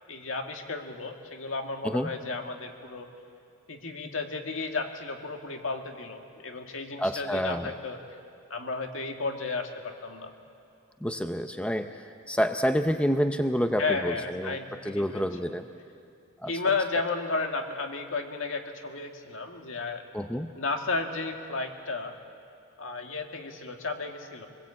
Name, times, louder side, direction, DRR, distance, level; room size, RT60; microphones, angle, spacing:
voice 1, 0.1-3.1 3.7-8.0 8.5-10.3 13.8-15.6 16.5-20.1 20.6-22.1 22.8-24.5, left 3 dB, 70° left, 4 dB, 2.0 m, -33 dB
voice 2, 7.0-7.7 11.0-11.9 12.3-14.6 14.8-15.6 16.4-16.5 20.1-20.5, equal, 5° left, 7 dB, 0.6 m, -28 dB
24.5 x 20.5 x 8.6 m, 2.5 s
head